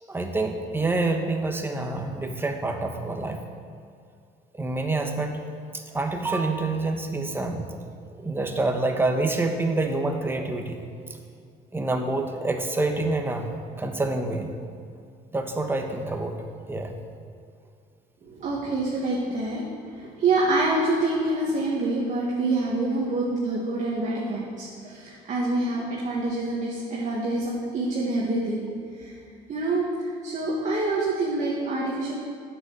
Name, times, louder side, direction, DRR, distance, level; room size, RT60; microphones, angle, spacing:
voice 1, 0.0-3.4 4.6-5.4 5.7-7.7 8.2-10.8 11.7-13.5 13.8-14.5 15.3-16.4 16.7-16.9, right 2 dB, 15° right, 4 dB, 1.2 m, -27 dB
voice 2, 18.2-19.6 20.0-28.6 29.0-29.1 29.5-29.8 30.2-32.1, right 2 dB, 45° right, -5 dB, 2.0 m, -26 dB
9.3 x 6.8 x 7.6 m, 2.3 s
cardioid pair, 110°, 17 cm